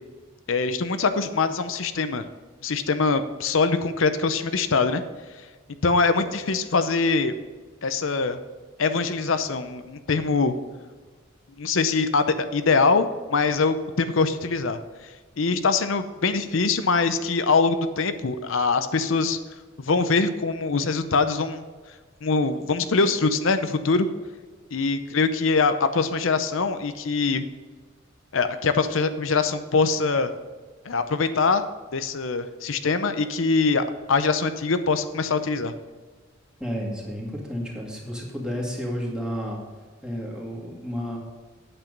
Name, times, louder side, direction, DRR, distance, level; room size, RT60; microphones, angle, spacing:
voice 1, 0.5-2.3 2.6-5.0 5.8-7.3 7.8-8.4 8.8-10.6 11.6-19.4 19.8-21.6 22.2-24.1 24.7-27.4 28.3-30.3 30.8-31.6 31.9-35.7, left 4 dB, 80° left, 10 dB, 0.7 m, -23 dB
voice 2, 36.6-39.6 40.0-41.2, equal, 5° right, -3 dB, 2.1 m, -31 dB
8.9 x 8.1 x 5.3 m, 1.4 s
head